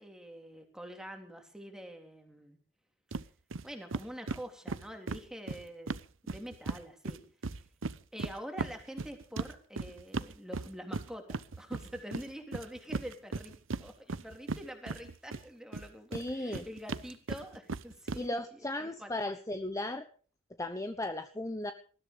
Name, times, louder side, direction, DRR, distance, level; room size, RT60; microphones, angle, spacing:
voice 1, 0.0-2.6 3.6-7.2 8.1-19.1, equal, 5° right, 4 dB, 3.3 m, -46 dB
sound 1, 3.1-3.3 3.5-3.6 3.9-6.8 7.1-15.4 15.7-18.2, right 3 dB, 85° right, 0.8 m, -37 dB
voice 2, 16.1-16.7 18.2-20.1 20.6-21.7, left 1 dB, 15° left, 8 dB, 1.0 m, -36 dB
20.0 x 14.0 x 5.2 m, 0.41 s
head